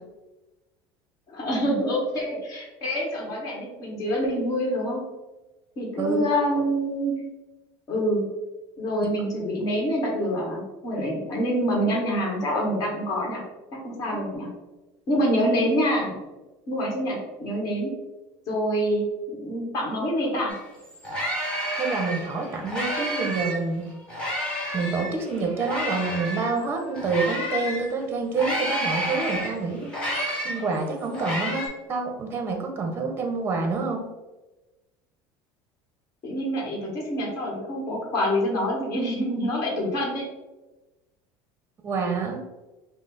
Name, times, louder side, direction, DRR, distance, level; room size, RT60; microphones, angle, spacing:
voice 1, 1.3-5.0 5.8-7.1 7.9-8.2 8.8-13.4 13.8-14.5 15.1-16.1 16.7-17.9 18.5-20.5 36.2-40.2, equal, 40° left, -3 dB, 1.5 m, -26 dB
sound 1, 20.5-20.6 20.9-23.6 24.1-27.9 28.3-31.7, equal, 10° left, 1.0 m, -30 dB
voice 2, 21.7-23.8 24.7-30.2 30.4-34.0 41.8-42.4, right 4 dB, 25° right, 3 dB, 0.7 m, -27 dB
5.3 x 2.0 x 3.9 m, 1.1 s
cardioid pair, 155°, 10 cm